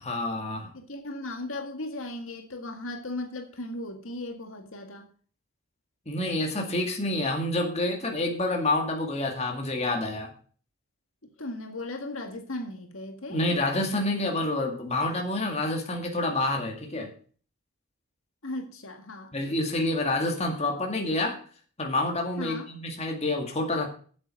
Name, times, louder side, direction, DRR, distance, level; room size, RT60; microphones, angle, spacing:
voice 1, 0.0-0.7 6.1-10.3 13.3-17.1 19.3-21.4 21.8-23.9, left 2 dB, 30° left, 2 dB, 2.1 m, -28 dB
voice 2, 0.7-5.1 11.4-13.4 18.4-19.3 22.4-22.7, left 2 dB, 65° left, 4 dB, 1.8 m, -37 dB
8.7 x 8.0 x 7.5 m, 0.44 s
head